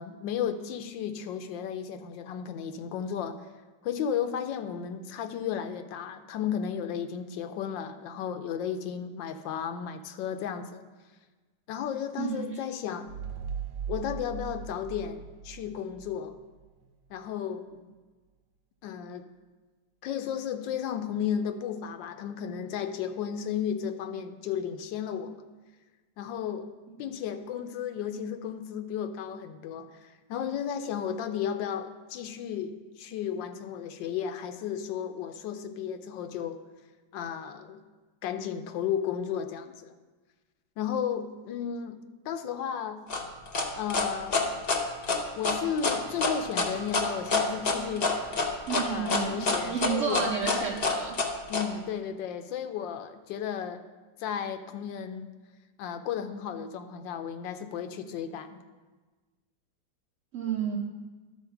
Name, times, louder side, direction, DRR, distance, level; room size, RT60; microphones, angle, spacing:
voice 1, 0.0-3.4 3.8-10.8 11.7-13.1 13.9-16.3 17.1-17.9 18.8-19.3 20.0-25.4 26.2-26.7 27.0-36.6 37.1-37.8 38.2-39.9 40.8-43.0 43.8-44.5 45.4-48.2 48.9-50.3 51.5-53.9 54.2-55.3 55.8-58.6, left 8 dB, 80° left, 9 dB, 1.3 m, -34 dB
voice 2, 12.2-12.6 48.7-51.2 60.3-60.8, right 6 dB, 60° right, -1 dB, 0.8 m, -31 dB
sound 1, 13.1-16.4, right 7 dB, 90° right, 1.3 m, -39 dB
sound 2, 43.1-51.6, left 3 dB, 45° left, 0.8 m, -27 dB
11.5 x 4.4 x 5.8 m, 1.3 s
omnidirectional pair, 2.0 m